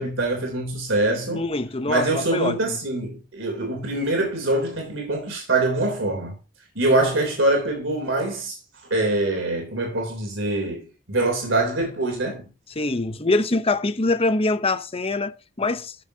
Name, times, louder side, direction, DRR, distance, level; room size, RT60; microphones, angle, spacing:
voice 1, 0.0-1.4 1.9-6.3 6.7-8.6 8.9-12.4, right 2 dB, 75° right, 3.4 m, -24 dB
voice 2, 1.3-2.8 12.8-16.0, left 2 dB, 30° left, 0.8 m, -24 dB
13.0 x 7.1 x 2.8 m
head